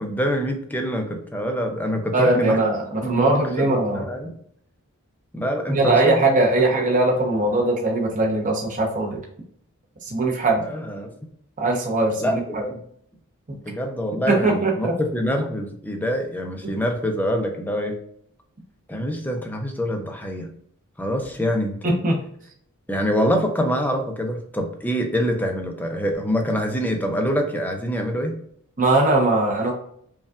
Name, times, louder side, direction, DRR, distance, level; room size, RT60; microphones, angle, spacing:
voice 1, 0.0-2.6 3.0-4.3 5.3-6.2 10.6-11.1 12.2-12.8 13.7-14.9 15.1-18.0 18.9-20.5 21.0-22.0 22.9-28.4, equal, 10° left, 3 dB, 0.6 m, -25 dB
voice 2, 2.1-4.0 5.7-9.2 10.1-10.6 11.6-12.6 13.5-13.6 14.3-14.9 21.8-22.2 28.8-29.7, right 2 dB, 35° right, -1 dB, 0.9 m, -20 dB
5.3 x 2.4 x 2.4 m, 0.65 s
head